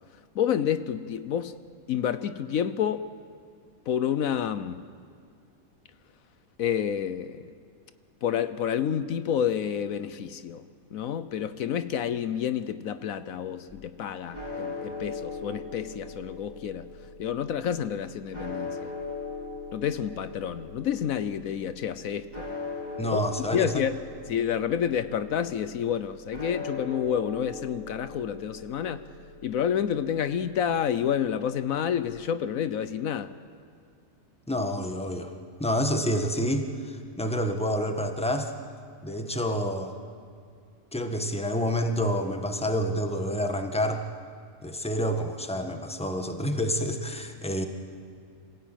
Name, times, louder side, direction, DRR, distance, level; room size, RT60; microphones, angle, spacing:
voice 1, 0.3-1.6 1.9-3.1 3.9-4.8 6.6-7.5 8.2-10.6 10.9-18.9 19.7-22.4 23.1-23.2 23.5-23.9 24.3-29.0 29.4-33.3, left 9 dB, 75° left, 1.2 m, -29 dB
sound 1, 13.7-32.1, left 3 dB, 30° left, 4.0 m, -40 dB
voice 2, 23.0-23.8 34.5-35.3 35.6-38.5 39.0-39.9 40.9-44.0 44.6-47.7, equal, 5° left, 1.4 m, -28 dB
26.5 x 17.5 x 9.1 m
omnidirectional pair, 1.5 m